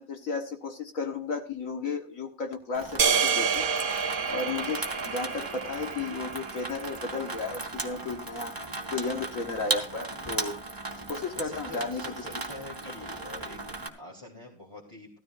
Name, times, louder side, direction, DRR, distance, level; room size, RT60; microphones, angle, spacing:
voice 1, 0.0-3.7 4.3-8.6 8.9-10.6 11.1-12.0, left 4 dB, 70° left, 4 dB, 1.8 m, -34 dB
Water tap faucet / Sink (filling or washing), 2.7-13.9, right 2 dB, 15° right, 1.1 m, -37 dB
sound 1, 3.0-7.4, right 6 dB, 45° right, 0.8 m, -29 dB
voice 2, 11.3-15.2, left 2 dB, 20° left, -4 dB, 2.9 m, -45 dB
15.5 x 13.0 x 2.5 m, 0.38 s
omnidirectional pair, 1.5 m